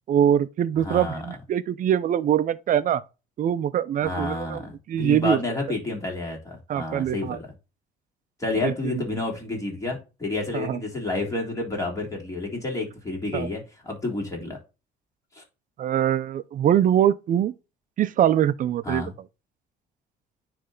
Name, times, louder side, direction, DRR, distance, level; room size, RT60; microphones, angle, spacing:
voice 1, 0.1-3.0 3.4-5.4 6.7-7.4 8.6-9.0 10.5-10.8 13.3-13.5 15.8-17.5 18.0-19.0, right 10 dB, 50° right, 0.7 m, -23 dB
voice 2, 0.8-1.2 4.0-7.4 8.4-14.6 15.3-15.4 18.8-19.1, left 2 dB, 20° left, 3.6 m, -30 dB
9.6 x 3.4 x 3.9 m
cardioid pair, 110°, 17 cm